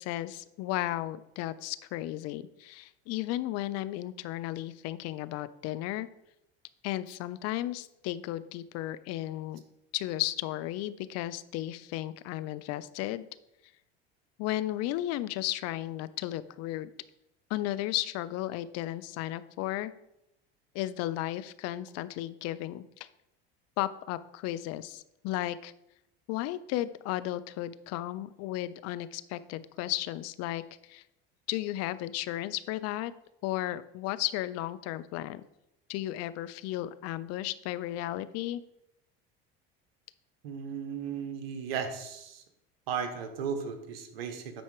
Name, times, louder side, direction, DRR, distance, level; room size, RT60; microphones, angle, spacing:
voice 1, 0.0-6.1 6.8-9.6 9.9-13.3 14.4-16.9 17.5-19.9 20.7-23.1 23.8-25.7 26.3-31.0 31.5-33.1 33.4-35.4 35.9-38.6, left 15 dB, 60° left, 16 dB, 0.6 m, -34 dB
voice 2, 40.4-42.4 42.9-44.6, right 7 dB, 90° right, 7 dB, 1.2 m, -35 dB
9.2 x 4.3 x 4.8 m, 0.84 s
hypercardioid pair, 85°, 29 cm